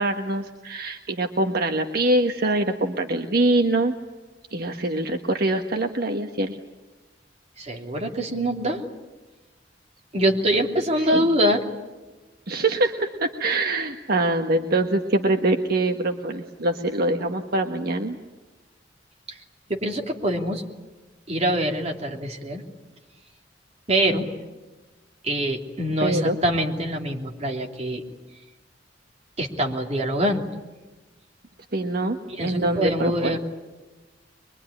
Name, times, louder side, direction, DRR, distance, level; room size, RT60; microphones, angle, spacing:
voice 1, 0.0-4.0 4.5-6.6 11.1-11.3 12.5-18.2 26.0-26.4 31.7-33.4, right 2 dB, 60° right, 4 dB, 1.4 m, -24 dB
voice 2, 7.6-8.8 10.1-11.6 19.3-19.4 19.7-20.6 21.3-22.6 23.9-24.3 25.2-28.0 29.4-30.5 32.3-33.4, right 1 dB, 35° right, 2 dB, 3.0 m, -24 dB
23.5 x 23.0 x 10.0 m, 1.2 s
head